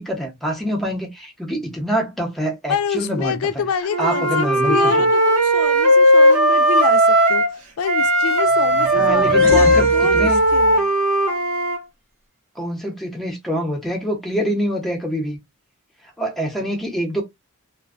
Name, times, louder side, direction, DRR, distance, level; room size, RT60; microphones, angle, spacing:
voice 1, 0.0-3.4 4.0-5.1 8.9-10.4 12.6-15.4 16.2-17.2, equal, ahead, 0.7 m, -25 dB
voice 2, 2.7-10.9, left 7 dB, 70° left, 0.4 m, -27 dB
Wind instrument woodwind instrument, 3.9-7.5 7.8-11.8, equal, 90° right, 0.6 m, -16 dB
sound 1, 8.5-10.8, right 3 dB, 50° right, 0.5 m, -29 dB
2.5 x 2.2 x 2.3 m
head